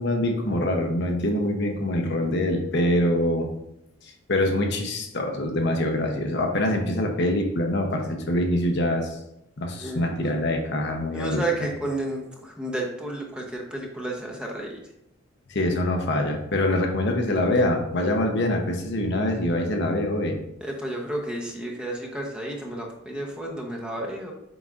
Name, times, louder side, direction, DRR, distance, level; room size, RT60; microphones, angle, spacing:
voice 1, 0.0-3.5 4.3-9.1 9.6-11.4 15.5-20.4, left 1 dB, 60° left, 2 dB, 0.9 m, -24 dB
voice 2, 9.8-10.3 11.1-14.8 20.6-24.3, right 2 dB, 5° right, -1 dB, 0.9 m, -32 dB
7.9 x 4.9 x 2.5 m, 0.83 s
head